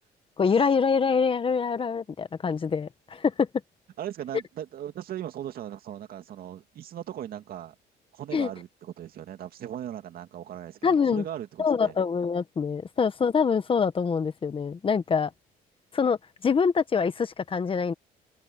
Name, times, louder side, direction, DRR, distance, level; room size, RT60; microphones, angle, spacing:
voice 1, 0.4-3.5 8.3-8.5 10.8-11.2 11.6-15.3 15.9-16.2 16.4-17.9, left 6 dB, 30° left, 1.4 m, -25 dB
voice 2, 4.0-7.7 8.1-12.0, right 11 dB, 60° right, 2.4 m, -38 dB
open air
cardioid pair, 110°, 17 cm